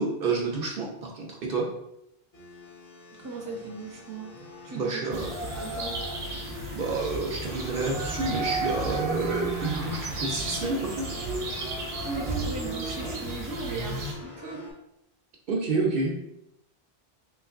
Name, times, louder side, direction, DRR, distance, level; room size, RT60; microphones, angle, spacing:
voice 1, 0.0-1.7 4.7-5.3 6.3-11.1 15.5-16.2, right 3 dB, 65° right, 0 dB, 0.8 m, -29 dB
sound 1, 2.3-14.7, left 2 dB, 40° left, 1.2 m, -44 dB
voice 2, 3.2-4.3 4.6-5.1 5.6-6.0 12.0-14.7, right 4 dB, 25° right, -1 dB, 0.6 m, -37 dB
sound 2, 5.1-14.1, right 2 dB, 80° right, 1.1 m, -33 dB
3.3 x 3.1 x 2.5 m, 0.78 s
omnidirectional pair, 1.1 m